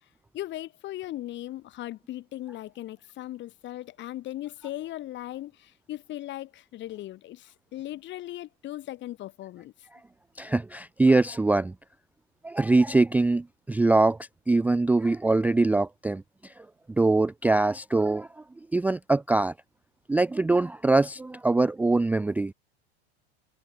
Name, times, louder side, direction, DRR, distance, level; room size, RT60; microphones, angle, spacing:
voice 1, 0.3-9.7, left 14 dB, 35° left, 1.2 m, -38 dB
voice 2, 10.4-11.7 12.4-16.7 17.0-18.4 18.7-19.5 20.1-22.5, right 2 dB, 5° right, 0.5 m, -23 dB
supercardioid pair, 120°, 32 cm